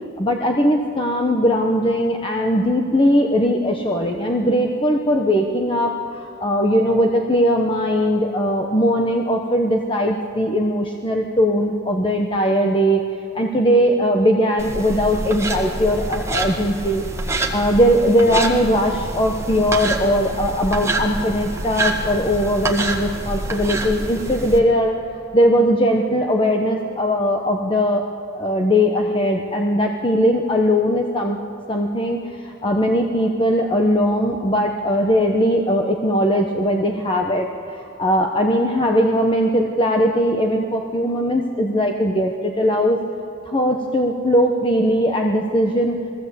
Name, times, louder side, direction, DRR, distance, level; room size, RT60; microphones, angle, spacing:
voice 1, 0.2-13.0 13.3-17.0 17.5-24.9 25.3-28.0 28.3-31.4 31.7-43.0 43.5-46.0, equal, 25° left, 2 dB, 1.0 m, -19 dB
sound 1, 14.6-24.6, right 2 dB, 15° right, 1.7 m, -27 dB
21.0 x 15.5 x 8.2 m, 3.0 s
head